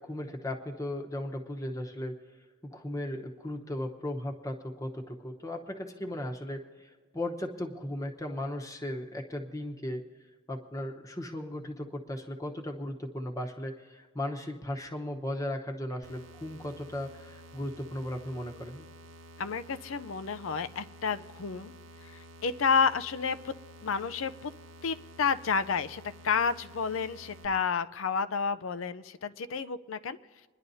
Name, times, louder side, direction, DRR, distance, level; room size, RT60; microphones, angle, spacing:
voice 1, 0.0-2.2 2.7-10.1 10.5-18.9, left 1 dB, 15° left, 2 dB, 0.9 m, -36 dB
sound 1, 16.0-27.5, right 1 dB, 75° right, 0.8 m, -51 dB
voice 2, 19.4-21.7 22.1-23.5 23.8-24.5 24.8-30.2, left 5 dB, 85° left, 12 dB, 0.5 m, -30 dB
26.0 x 11.0 x 2.7 m, 1.5 s
head